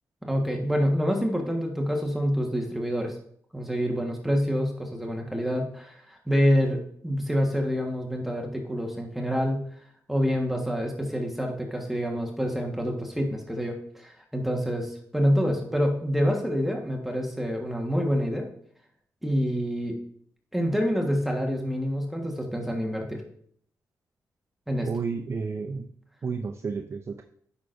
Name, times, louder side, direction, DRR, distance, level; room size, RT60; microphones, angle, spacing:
voice 1, 0.3-3.2 3.5-9.6 10.1-18.5 19.2-20.0 20.5-23.2 24.7-24.9, equal, 5° right, 1 dB, 1.4 m, -27 dB
voice 2, 24.8-25.9 26.2-27.2, right 5 dB, 40° right, 5 dB, 0.5 m, -31 dB
9.4 x 6.1 x 2.6 m, 0.63 s
cardioid pair, 80°, 7 cm